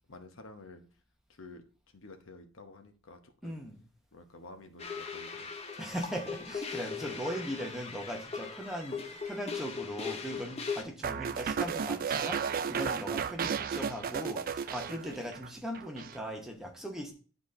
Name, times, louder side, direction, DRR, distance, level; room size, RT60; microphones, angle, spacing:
voice 1, 0.1-0.9 1.3-1.6 1.9-3.6 4.1-5.5, left 2 dB, 65° left, 6 dB, 0.9 m, -51 dB
voice 2, 3.4-3.8 5.8-17.1, equal, ahead, 1 dB, 0.9 m, -39 dB
sound 1, 4.8-10.8, left 5 dB, 30° left, 0.6 m, -39 dB
sound 2, 11.0-15.5 15.7-16.2, right 6 dB, 40° right, 0.3 m, -33 dB
9.8 x 4.1 x 3.7 m, 0.39 s
head